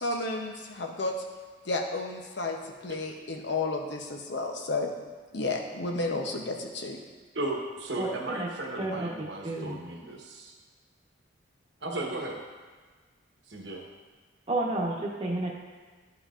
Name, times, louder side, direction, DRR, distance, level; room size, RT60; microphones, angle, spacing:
voice 1, 0.0-1.1 1.6-2.6 2.8-4.9 5.3-7.0, left 2 dB, 60° left, 2 dB, 0.8 m, -32 dB
voice 2, 7.3-10.5 11.8-12.4 13.5-13.8, right 2 dB, 60° right, -1 dB, 1.1 m, -35 dB
voice 3, 8.8-9.1 9.4-9.8 14.5-15.5, right 2 dB, 25° right, -3 dB, 1.1 m, -30 dB
11.0 x 5.7 x 2.5 m, 1.4 s
head